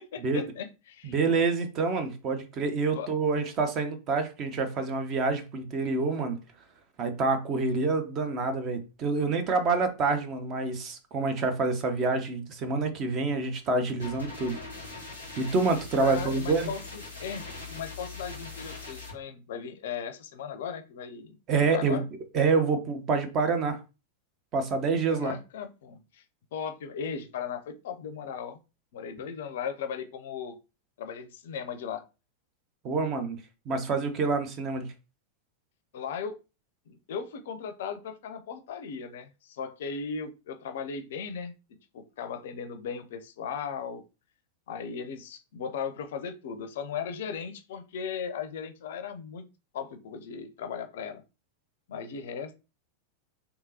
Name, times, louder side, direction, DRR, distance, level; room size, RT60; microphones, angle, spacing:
voice 1, 0.0-1.2 3.0-3.1 16.0-22.0 25.1-26.2 26.5-28.6 28.9-30.6 31.0-32.0 35.9-36.4 36.9-41.5 41.9-44.0 44.7-49.5 49.7-51.2 51.9-52.5, left 6 dB, 55° left, 0.4 m, -37 dB
voice 2, 1.0-6.4 7.0-14.6 15.4-16.7 21.5-22.0 22.3-23.8 24.5-25.3 32.8-33.4 33.7-34.9, right 4 dB, 35° right, 0.7 m, -27 dB
sound 1, 14.0-19.1, left 3 dB, 90° right, 1.7 m, -41 dB
3.5 x 2.8 x 2.8 m
figure-of-eight pair, 90°, 0 cm